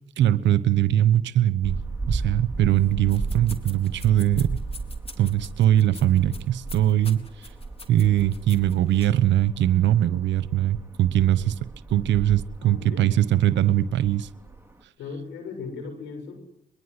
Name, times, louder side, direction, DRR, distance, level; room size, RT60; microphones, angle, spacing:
voice 1, 0.2-1.8 2.1-4.6 5.2-7.5 7.9-11.5 11.9-14.3, right 12 dB, 80° right, 15 dB, 1.1 m, -21 dB
sound 1, 1.6-14.8, right 3 dB, 10° right, 4.1 m, -36 dB
sound 2, 3.0-9.3, left 2 dB, 30° left, 4.0 m, -45 dB
voice 2, 12.6-13.1 15.0-16.4, left 4 dB, 90° left, 6 dB, 6.9 m, -37 dB
22.5 x 22.5 x 9.8 m, 0.83 s
supercardioid pair, 50°, 18 cm